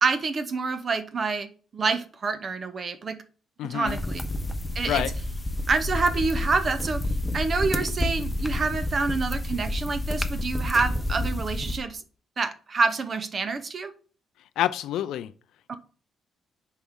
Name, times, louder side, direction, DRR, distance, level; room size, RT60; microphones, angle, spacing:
voice 1, 0.0-1.5 1.7-3.2 3.6-4.2 4.7-5.0 5.7-7.0 7.3-12.0 12.4-13.9 15.7-15.8, right 4 dB, 40° right, 0.8 m, -27 dB
voice 2, 3.6-4.0 4.9-5.1 14.6-15.3, left 11 dB, 85° left, 0.4 m, -27 dB
sound 1, 3.9-11.8, left 1 dB, 15° left, 0.7 m, -29 dB
7.1 x 4.6 x 3.7 m
cardioid pair, 90°, 0 cm